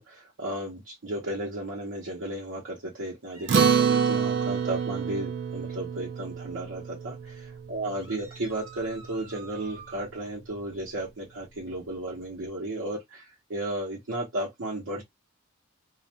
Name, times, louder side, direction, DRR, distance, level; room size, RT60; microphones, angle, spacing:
voice 1, 0.0-15.0, right 1 dB, 75° right, 0.8 m, -34 dB
sound 1, 3.3-5.1 8.0-10.0, right 4 dB, 25° right, 1.1 m, -50 dB
Acoustic guitar, 3.5-8.2, right 6 dB, 60° right, 0.4 m, -27 dB
2.3 x 2.1 x 2.7 m
head